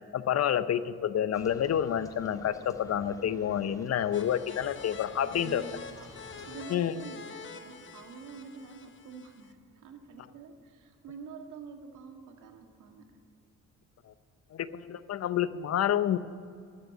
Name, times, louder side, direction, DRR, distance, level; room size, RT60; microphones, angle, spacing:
voice 1, 0.1-5.6 6.7-6.9 14.1-14.2 14.5-16.2, left 10 dB, 55° left, 14 dB, 0.7 m, -29 dB
sound 1, 1.3-6.7, left 1 dB, 10° left, 1.5 m, -52 dB
sound 2, 4.1-9.5, left 6 dB, 40° left, 1.3 m, -46 dB
voice 2, 5.2-6.1 6.5-13.2, right 5 dB, 80° right, 5 dB, 1.8 m, -47 dB
12.5 x 7.8 x 9.9 m, 2.4 s
cardioid pair, 90°, 30 cm